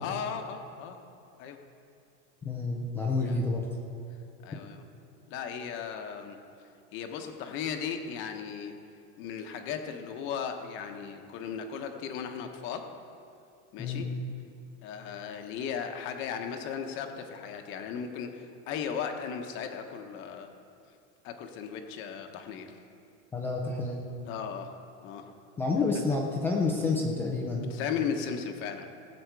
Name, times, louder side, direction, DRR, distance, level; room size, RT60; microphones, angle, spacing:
voice 1, 0.0-1.0 1.4-1.6 3.2-3.4 4.4-4.8 5.3-6.4 6.9-8.7 9.2-12.9 13.7-14.1 14.8-20.5 21.2-22.8 24.3-24.8 25.0-25.3 27.7-28.9, left 7 dB, 35° left, 5 dB, 0.9 m, -36 dB
voice 2, 2.4-3.6 13.8-14.0 23.3-24.1 25.6-27.7, left 3 dB, 5° left, -2 dB, 0.3 m, -29 dB
18.5 x 7.8 x 4.6 m, 2.6 s
supercardioid pair, 175°, 36 cm